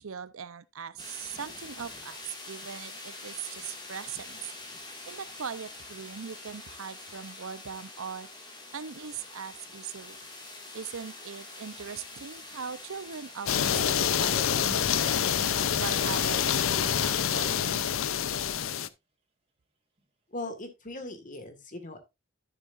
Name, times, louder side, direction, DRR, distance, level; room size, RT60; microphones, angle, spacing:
voice 1, 0.0-4.4 5.1-8.3 8.7-10.2 10.7-15.3 15.8-17.9, right 6 dB, 85° right, 0.6 m, -40 dB
sound 1, 1.0-16.5, left 2 dB, 20° left, 1.9 m, -45 dB
sound 2, 13.5-18.9, left 9 dB, 75° left, 0.5 m, -27 dB
sound 3, 14.6-18.4, equal, 30° right, 2.4 m, -48 dB
voice 2, 20.3-22.0, left 2 dB, 40° left, 1.7 m, -39 dB
12.0 x 6.9 x 2.5 m
head